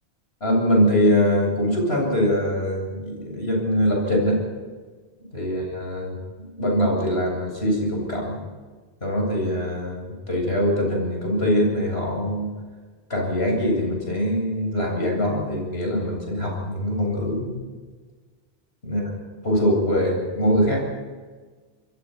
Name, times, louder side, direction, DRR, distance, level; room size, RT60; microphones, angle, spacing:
voice 1, 0.4-4.4 5.2-8.4 9.0-12.5 13.1-17.7 18.8-19.0 19.4-20.8, equal, 70° left, 0 dB, 8.5 m, -23 dB
28.0 x 21.5 x 5.8 m, 1.4 s
omnidirectional pair, 1.1 m